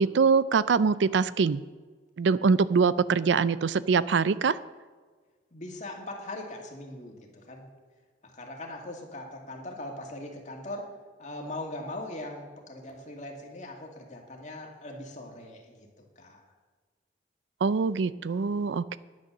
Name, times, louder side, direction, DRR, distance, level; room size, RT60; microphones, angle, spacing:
voice 1, 0.0-1.6 2.2-4.6 17.6-19.0, right 5 dB, 75° right, 17 dB, 0.4 m, -24 dB
voice 2, 5.5-7.7 8.2-10.9 11.2-15.9 16.2-16.4, left 1 dB, 40° left, 1 dB, 2.2 m, -40 dB
10.5 x 9.3 x 6.5 m, 1.4 s
head